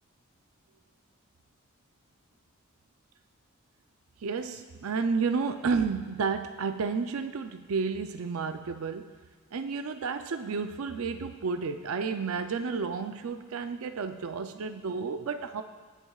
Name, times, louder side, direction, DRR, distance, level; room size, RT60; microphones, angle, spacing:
voice 1, 4.2-9.1 9.5-15.6, right 5 dB, 90° right, 7 dB, 0.5 m, -31 dB
24.0 x 8.3 x 2.4 m, 1.5 s
head